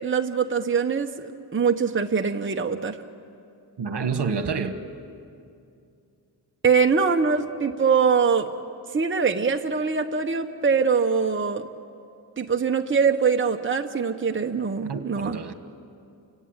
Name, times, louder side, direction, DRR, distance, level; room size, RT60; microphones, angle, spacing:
voice 1, 0.0-3.0 6.6-8.5 8.9-11.7 12.4-15.4, right 5 dB, 25° right, 4 dB, 1.0 m, -23 dB
voice 2, 3.8-4.8 14.9-15.5, right 5 dB, 60° right, 8 dB, 1.6 m, -28 dB
29.5 x 17.0 x 9.0 m, 2.5 s
cardioid pair, 75°, 45 cm